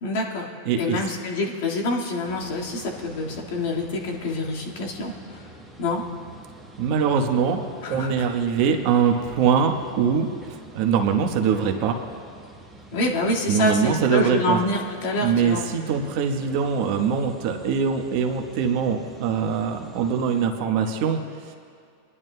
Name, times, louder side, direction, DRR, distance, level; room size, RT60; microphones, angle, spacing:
voice 1, 0.0-5.5 5.8-6.0 7.8-8.2 12.9-15.6, left 2 dB, 65° left, -2 dB, 1.9 m, -27 dB
voice 2, 0.6-1.0 6.8-7.6 7.9-10.3 10.7-12.0 13.5-14.6 15.2-21.2 21.5-21.6, right 6 dB, 55° right, 4 dB, 1.1 m, -22 dB
sound 1, 2.2-20.5, right 1 dB, ahead, 1.2 m, -46 dB
23.5 x 11.0 x 2.2 m, 2.3 s
hypercardioid pair, 120°, 0 cm